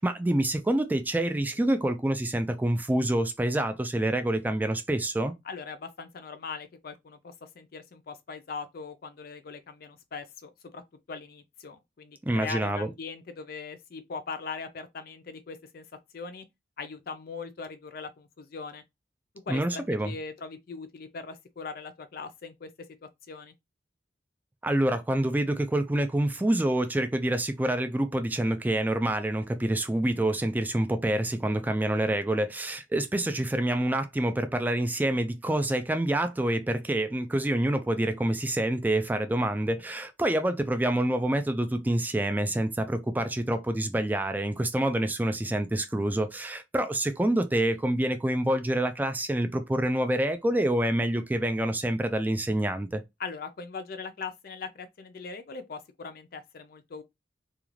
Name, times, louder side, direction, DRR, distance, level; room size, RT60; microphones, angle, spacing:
voice 1, 0.0-5.3 12.2-12.9 19.5-20.1 24.6-53.0, right 1 dB, 10° right, 0.3 m, -27 dB
voice 2, 5.4-10.8 11.1-15.8 16.1-16.5 16.8-18.8 19.4-22.7 23.0-23.5 53.2-57.0, left 4 dB, 55° left, 0.4 m, -40 dB
2.4 x 2.3 x 3.0 m
head